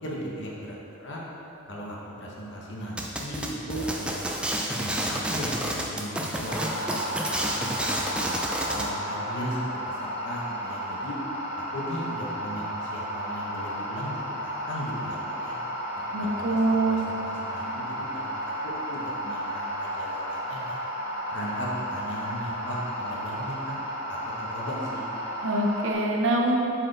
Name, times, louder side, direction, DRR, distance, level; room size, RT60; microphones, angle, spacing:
voice 1, 0.0-1.2 1.7-4.2 4.5-8.1 8.7-9.7 10.0-11.1 11.7-15.6 16.4-20.8 21.3-23.8 24.1-25.0, equal, 55° left, -4 dB, 1.1 m, -37 dB
sound 1, 3.0-8.9, right 1 dB, 5° right, 0.3 m, -30 dB
sound 2, 6.5-25.9, equal, 25° left, 1.3 m, -33 dB
voice 2, 16.1-17.0 25.4-26.6, right 2 dB, 60° right, 0 dB, 0.7 m, -24 dB
7.4 x 4.7 x 3.4 m, 2.9 s
head